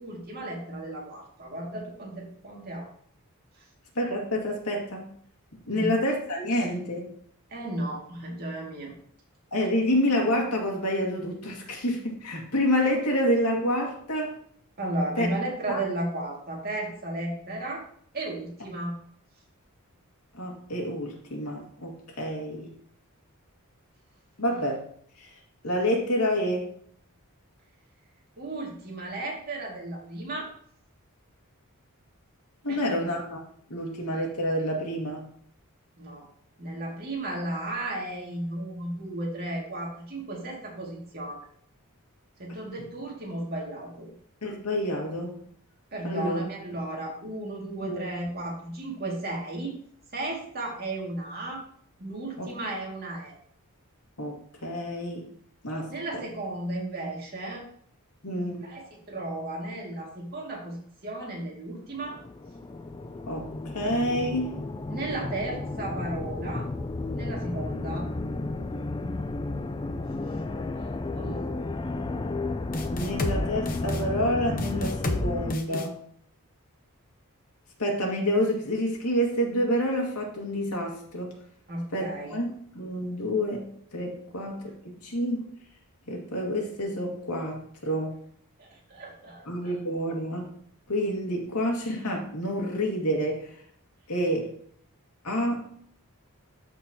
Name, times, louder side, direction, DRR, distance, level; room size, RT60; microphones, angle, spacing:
voice 1, 0.0-2.9 5.7-5.9 7.5-8.9 14.8-17.8 18.1-19.0 28.4-30.5 32.7-33.0 36.0-36.3 36.6-41.4 42.4-44.1 45.9-49.7 50.1-51.6 52.0-53.4 55.9-57.7 58.6-62.2 64.9-66.7 67.1-68.1 70.2-70.3 70.8-71.5 75.7-75.8 81.7-82.4 88.6-89.7, right 1 dB, 45° right, -2 dB, 2.3 m, -34 dB
voice 2, 4.0-5.1 5.7-7.1 9.5-14.4 15.2-15.3 15.7-15.8 20.3-22.7 24.4-24.8 25.2-25.3 25.6-26.7 32.6-33.4 33.7-35.3 44.4-45.4 46.0-46.4 47.8-48.0 52.4-52.5 54.2-55.3 55.6-55.9 58.2-58.7 63.3-64.6 72.9-75.9 77.8-81.4 81.9-85.5 86.1-88.2 89.5-90.6 90.9-93.5 94.1-94.5 95.2-95.7, equal, 90° left, 0 dB, 2.1 m, -28 dB
sound 1, 62.0-75.5, left 2 dB, 20° left, 0.4 m, -33 dB
sound 2, 72.7-73.4 73.7-74.0 74.6-75.2 75.5-75.9, left 2 dB, 40° left, 0.7 m, -30 dB
13.0 x 4.6 x 2.9 m, 0.62 s
head